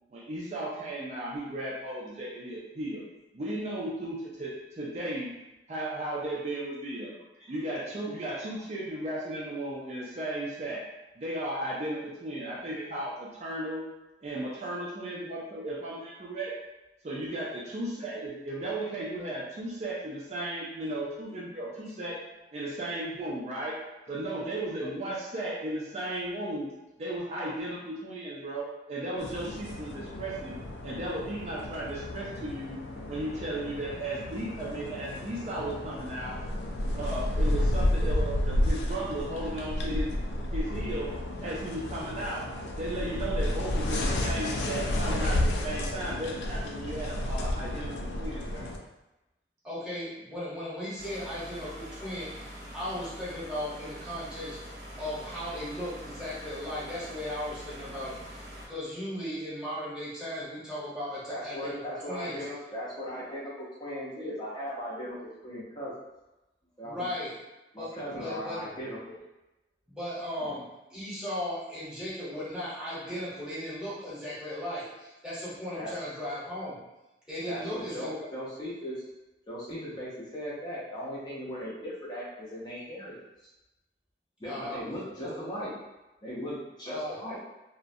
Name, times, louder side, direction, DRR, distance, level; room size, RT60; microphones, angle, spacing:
voice 1, 0.1-3.0 3.3-5.4 5.7-7.1 7.5-10.8 11.2-13.9 14.2-16.5 17.0-22.2 22.5-23.8 24.1-26.7 27.0-32.8 33.1-36.4 36.9-40.2 40.5-41.1 41.4-42.4 42.8-48.7, right 1 dB, 40° right, -4 dB, 0.4 m, -35 dB
sound 1, 29.2-48.8, left 1 dB, 80° left, 0.3 m, -31 dB
voice 2, 49.6-54.6 55.0-62.4 66.8-67.3 67.8-68.7 69.9-76.8 77.3-78.3 84.4-84.8 85.2-85.4 86.9-87.2, left 1 dB, 5° right, -11 dB, 0.9 m, -37 dB
sound 2, 51.0-58.7, equal, 70° right, 0.8 m, -44 dB
voice 3, 61.3-66.0 66.8-67.0 67.7-69.2 70.4-70.5 75.7-76.1 77.5-79.0 79.5-83.2 84.4-85.8 86.2-87.4, equal, 25° left, -7 dB, 0.5 m, -38 dB
2.4 x 2.1 x 2.6 m, 0.98 s
head